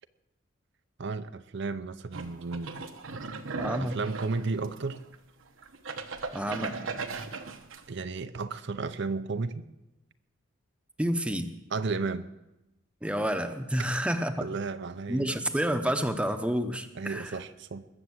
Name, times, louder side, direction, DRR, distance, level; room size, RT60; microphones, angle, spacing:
voice 1, 1.0-2.7 3.8-5.0 7.9-9.7 11.7-12.3 14.4-15.4 17.0-17.8, right 4 dB, 60° right, 10 dB, 0.6 m, -33 dB
sound 1, 2.1-5.1 5.6-7.9, right 4 dB, 80° right, 1.2 m, -37 dB
voice 2, 3.6-4.0 6.3-6.8 11.0-11.5 13.0-14.5 15.1-17.4, equal, 5° right, 7 dB, 0.8 m, -29 dB
20.5 x 7.3 x 7.9 m, 0.96 s
head